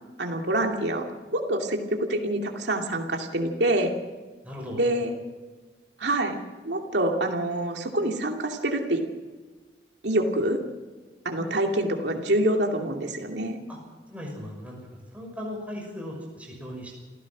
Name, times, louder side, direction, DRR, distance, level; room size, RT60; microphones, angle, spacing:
voice 1, 0.2-1.1 1.3-3.9 4.8-5.1 6.0-6.3 6.6-9.0 10.0-10.6 11.2-13.6, right 1 dB, 70° right, 2 dB, 2.6 m, -26 dB
voice 2, 4.4-4.8 13.7-13.8 14.1-14.8 15.1-16.9, left 1 dB, 10° right, -1 dB, 6.1 m, -37 dB
27.5 x 15.5 x 6.2 m, 1.3 s
head